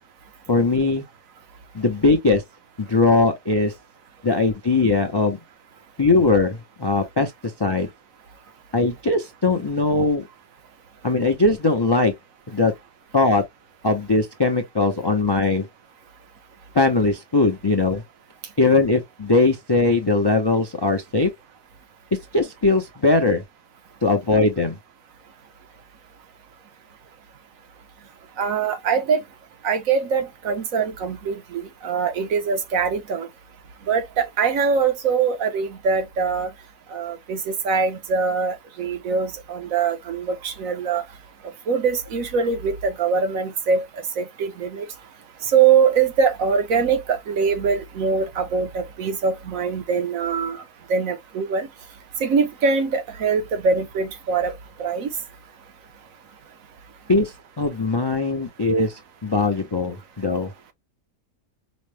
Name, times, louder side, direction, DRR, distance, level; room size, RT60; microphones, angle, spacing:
voice 1, 0.5-1.0 1.7-2.4 2.8-3.7 4.2-5.4 6.0-7.3 7.6-7.9 8.7-10.3 11.0-12.1 12.5-12.7 13.1-13.4 13.8-15.7 16.7-18.0 18.6-21.3 22.3-23.4 24.0-24.8 57.1-60.5, left 3 dB, 40° left, 0.3 m, -20 dB
voice 2, 28.4-29.2 29.6-33.3 33.9-36.5 36.9-41.0 41.7-43.8 44.2-44.8 45.5-50.6 50.9-51.7 52.2-54.5 54.8-55.1, right 5 dB, 75° right, 1.2 m, -22 dB
5.1 x 2.1 x 3.2 m
omnidirectional pair, 1.4 m